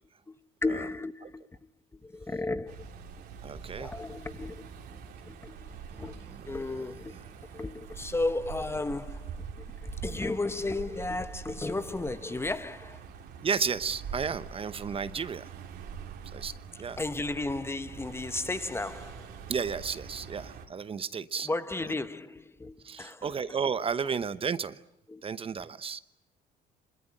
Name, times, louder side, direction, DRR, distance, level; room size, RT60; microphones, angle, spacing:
voice 1, 0.6-1.4 2.0-2.9 3.8-7.2 7.5-13.0 17.0-19.4 21.4-23.3 25.1-25.2 25.6-25.7, left 2 dB, 15° left, 1.0 m, -34 dB
sound 1, 2.7-20.7, right 6 dB, 75° right, 3.6 m, -44 dB
voice 2, 3.4-4.0 6.2-6.4 13.4-15.5 16.2-17.0 19.5-21.5 22.8-24.8 25.2-26.0, right 6 dB, 35° right, 1.0 m, -33 dB
26.0 x 22.0 x 10.0 m
cardioid pair, 110°, 17 cm